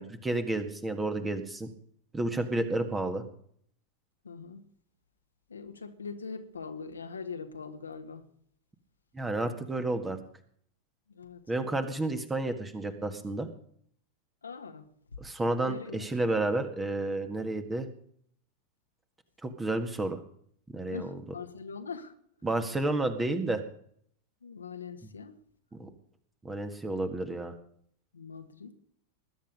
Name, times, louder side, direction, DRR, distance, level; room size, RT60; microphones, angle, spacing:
voice 1, 0.0-1.7 2.1-3.2 9.1-10.2 11.5-13.5 15.2-17.9 19.4-20.2 20.7-21.1 22.4-23.6 25.7-25.9 26.4-27.5, right 2 dB, 10° right, 1.8 m, -31 dB
voice 2, 4.2-4.6 5.5-8.3 11.1-11.5 14.4-15.2 15.6-16.1 20.9-22.1 24.4-25.3 28.1-28.7, left 5 dB, 75° left, 1.5 m, -42 dB
20.0 x 10.5 x 5.3 m
figure-of-eight pair, 90°, 0 cm